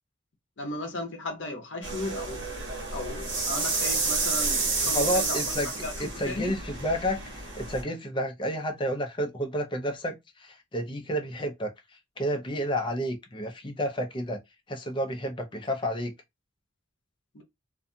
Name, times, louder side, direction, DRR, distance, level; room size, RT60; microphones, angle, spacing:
voice 1, 0.6-2.4 2.9-6.5 17.3-17.4, left 2 dB, 60° left, 0.7 m, -36 dB
sound 1, 1.8-7.8, right 3 dB, 55° right, 1.2 m, -30 dB
voice 2, 4.9-5.7 6.2-11.7 12.2-14.4 14.7-16.1, equal, 25° left, 0.5 m, -30 dB
2.6 x 2.3 x 2.6 m
head